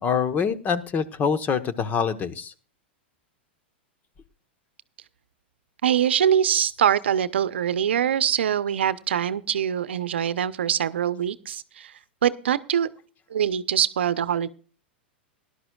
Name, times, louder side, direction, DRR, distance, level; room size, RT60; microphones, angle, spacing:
voice 1, 0.0-2.5, left 6 dB, 30° left, 12 dB, 1.2 m, -25 dB
voice 2, 5.8-11.9 12.2-12.9 13.3-14.5, right 9 dB, 80° right, 15 dB, 0.8 m, -23 dB
18.5 x 11.5 x 2.4 m, 0.38 s
hypercardioid pair, 110°, 6 cm